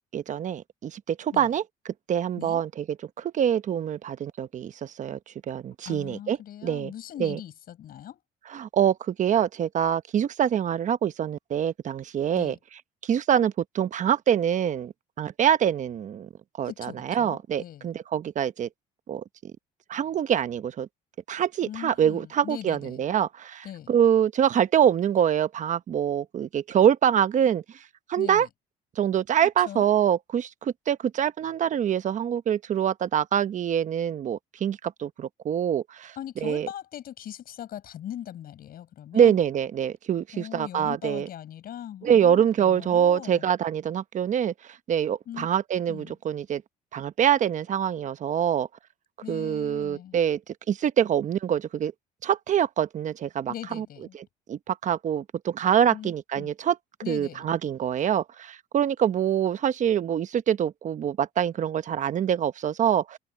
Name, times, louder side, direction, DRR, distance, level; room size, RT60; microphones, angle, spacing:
voice 1, 0.1-2.8 3.2-5.2 5.5-6.9 7.2-7.4 8.5-12.5 13.0-14.9 15.2-16.3 16.6-18.7 19.1-19.5 19.9-20.9 21.3-27.6 28.1-28.5 29.0-36.1 36.4-36.7 39.1-41.3 42.0-44.5 44.9-46.6 46.9-48.7 49.3-50.4 50.7-51.9 52.2-53.8 54.5-56.8 57.1-63.2, right 9 dB, 45° right, 1.0 m, -25 dB
voice 2, 5.9-8.2 12.3-12.6 16.6-17.9 21.6-23.0 23.6-23.9 28.2-28.5 29.4-29.9 36.2-39.4 40.3-43.4 45.3-45.5 45.9-46.2 49.2-50.2 53.5-54.2 55.9-56.5 57.0-57.6, left 11 dB, 60° left, 7.2 m, -40 dB
cardioid pair, 110°, 17 cm